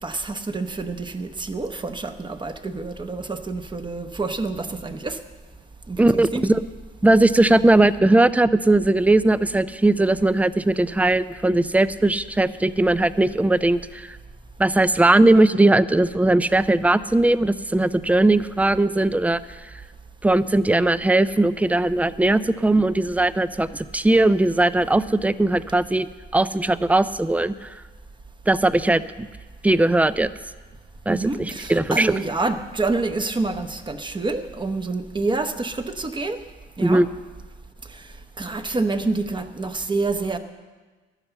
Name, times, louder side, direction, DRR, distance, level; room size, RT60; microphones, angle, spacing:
voice 1, 0.0-5.2 5.9-6.5 31.1-36.4 36.8-37.0 37.9-38.0 38.4-40.4, right 3 dB, 25° right, 7 dB, 0.9 m, -27 dB
voice 2, 6.0-6.6 7.0-14.2 14.6-19.6 20.2-27.8 28.5-29.3 29.6-30.3 31.1-32.1 36.8-37.1, right 2 dB, 5° right, 15 dB, 0.4 m, -19 dB
11.5 x 9.8 x 7.0 m, 1.3 s
cardioid pair, 90°, 20 cm